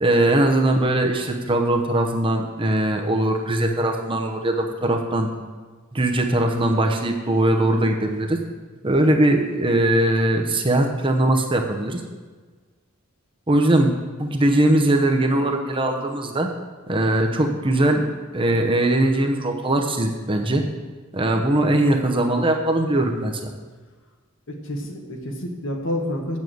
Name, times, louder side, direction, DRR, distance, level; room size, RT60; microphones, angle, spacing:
voice 1, 0.0-5.3 5.9-8.4 8.8-12.0 13.5-16.5 16.9-18.0 18.3-20.6 21.1-23.5, right 1 dB, 25° right, 3 dB, 0.9 m, -20 dB
voice 2, 24.5-26.4, left 1 dB, 60° left, 1 dB, 1.7 m, -29 dB
8.3 x 7.3 x 7.8 m, 1.4 s
head